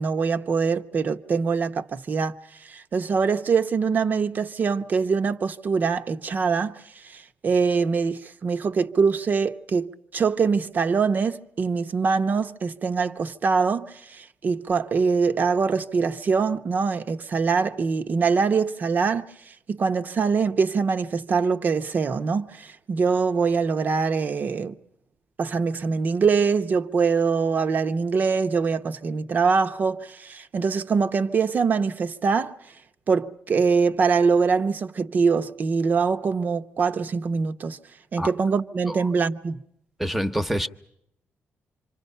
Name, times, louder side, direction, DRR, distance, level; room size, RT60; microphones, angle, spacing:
voice 1, 0.0-2.3 2.7-6.8 7.1-19.3 19.7-24.7 25.4-32.5 33.1-37.8 38.1-39.6, right 5 dB, 45° right, 0.9 m, -23 dB
voice 2, 40.0-40.7, equal, 5° right, 1.0 m, -26 dB
27.0 x 25.5 x 5.6 m
cardioid pair, 125°, 4 cm